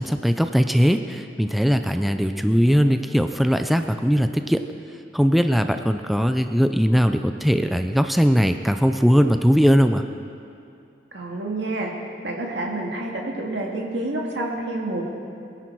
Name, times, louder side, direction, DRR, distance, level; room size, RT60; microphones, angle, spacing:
voice 1, 0.0-4.6 5.1-10.0, equal, ahead, 7 dB, 0.4 m, -20 dB
voice 2, 11.1-11.9 12.2-15.0, right 2 dB, 90° right, 0 dB, 2.1 m, -28 dB
21.0 x 10.5 x 4.6 m, 2.5 s
head